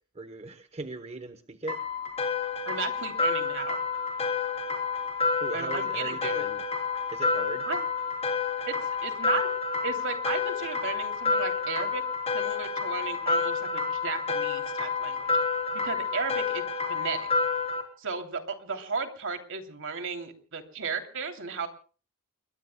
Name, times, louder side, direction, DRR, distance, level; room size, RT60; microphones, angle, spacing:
voice 1, 0.1-1.8 5.4-6.6 7.1-7.7, right 2 dB, 30° right, 9 dB, 1.0 m, -38 dB
sound 1, 1.7-17.8, left 4 dB, 30° left, 3.6 m, -29 dB
voice 2, 2.7-3.8 5.5-6.4 7.7-7.8 8.7-8.8 9.0-9.5 9.8-12.0 12.3-15.3 15.7-16.6 16.9-17.3 18.0-21.7, right 5 dB, 60° right, 6 dB, 2.9 m, -35 dB
29.5 x 22.0 x 2.2 m, 0.40 s
head